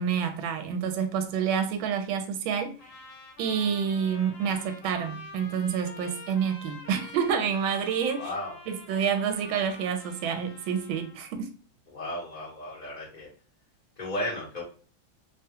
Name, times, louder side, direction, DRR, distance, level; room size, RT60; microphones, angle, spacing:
voice 1, 0.0-2.8 3.4-8.3 8.7-11.5, right 7 dB, 80° right, 1.4 m, -28 dB
Trumpet, 2.8-11.4, left 2 dB, 75° left, 1.5 m, -46 dB
voice 2, 8.1-8.6 11.9-13.3 14.0-14.6, left 1 dB, 40° left, 0.7 m, -34 dB
3.5 x 2.2 x 2.8 m
omnidirectional pair, 2.2 m